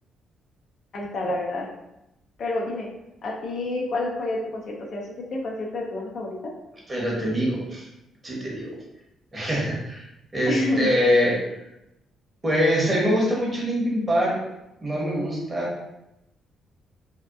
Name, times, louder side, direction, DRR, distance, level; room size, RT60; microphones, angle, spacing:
voice 1, 0.9-1.7 2.4-2.9 3.2-6.5 10.5-10.9, left 2 dB, 60° left, -1 dB, 0.5 m, -28 dB
voice 2, 6.9-7.9 8.2-8.7 9.3-10.0 10.3-11.4 12.4-14.4 14.8-15.7, equal, 25° right, -3 dB, 0.9 m, -23 dB
2.7 x 2.1 x 2.3 m, 0.88 s
cardioid pair, 90°, 0 cm